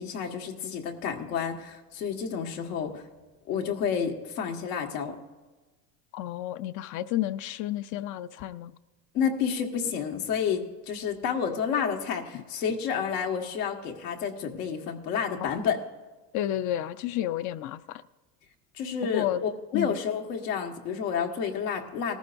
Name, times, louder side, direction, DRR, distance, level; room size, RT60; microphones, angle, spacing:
voice 1, 0.0-3.0 3.5-5.2 9.1-15.8 18.7-22.2, left 7 dB, 80° left, 1.8 m, -30 dB
voice 2, 6.1-8.7 12.3-12.4 15.4-15.5 16.3-18.0 19.1-19.4 19.7-20.0, left 12 dB, 40° left, 0.5 m, -31 dB
18.5 x 14.5 x 2.6 m
supercardioid pair, 115°, 47 cm